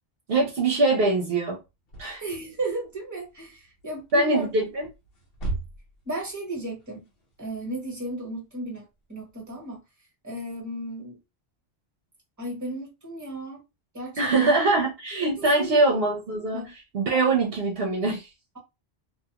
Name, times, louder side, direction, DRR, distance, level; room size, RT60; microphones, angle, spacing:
voice 1, 0.3-1.6 2.0-2.2 4.1-4.9 14.2-18.3, right 2 dB, 65° right, 0.9 m, -23 dB
sound 1, 1.6-9.7, right 2 dB, 60° left, 1.0 m, -39 dB
voice 2, 2.2-4.5 6.0-7.1 7.4-8.8 9.1-9.8 10.2-11.2 12.4-13.6 13.9-14.5 15.3-15.8 16.5-16.7, right 2 dB, 15° right, 1.2 m, -34 dB
2.6 x 2.4 x 2.8 m
omnidirectional pair, 1.1 m